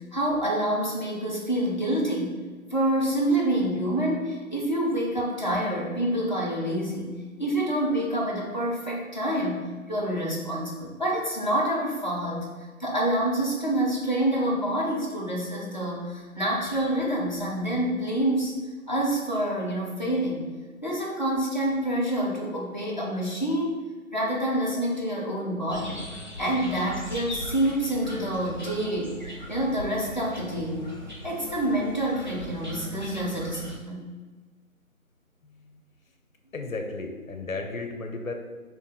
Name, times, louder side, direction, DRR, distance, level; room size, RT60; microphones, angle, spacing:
voice 1, 0.0-2.4 2.7-12.5 12.8-18.6 18.9-20.5 20.8-23.8 24.1-26.0 26.4-29.2 29.5-30.9 31.2-34.1, right 1 dB, 35° left, -4 dB, 0.6 m, -27 dB
sound 1, 25.7-33.8, equal, 35° right, 0.5 m, -39 dB
voice 2, 35.4-35.8 36.5-38.3, left 3 dB, 70° left, 4 dB, 0.8 m, -34 dB
4.5 x 2.2 x 3.5 m, 1.4 s
figure-of-eight pair, 165°, 42 cm